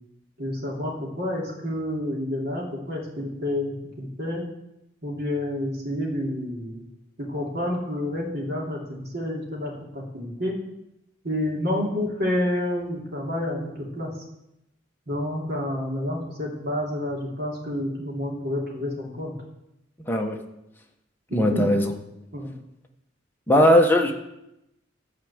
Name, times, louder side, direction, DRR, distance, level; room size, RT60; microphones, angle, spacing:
voice 1, 0.4-4.4 5.0-6.8 7.2-10.6 11.2-14.1 15.1-19.3 21.3-21.7 22.3-22.5, left 1 dB, 55° right, -2 dB, 3.1 m, -29 dB
voice 2, 20.1-20.4 21.3-21.9 23.5-24.1, equal, 10° left, 2 dB, 1.1 m, -18 dB
12.5 x 4.9 x 8.0 m, 0.88 s
head